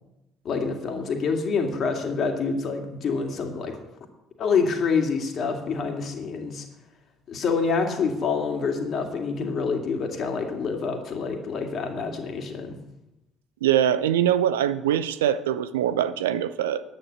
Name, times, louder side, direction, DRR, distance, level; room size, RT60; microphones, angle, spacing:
voice 1, 0.4-3.8 4.4-6.7 7.3-12.8, left 5 dB, 45° left, 3 dB, 2.3 m, -27 dB
voice 2, 13.6-16.8, right 10 dB, 75° right, 13 dB, 0.6 m, -23 dB
10.0 x 9.8 x 6.4 m, 0.93 s
figure-of-eight pair, 55°, 0 cm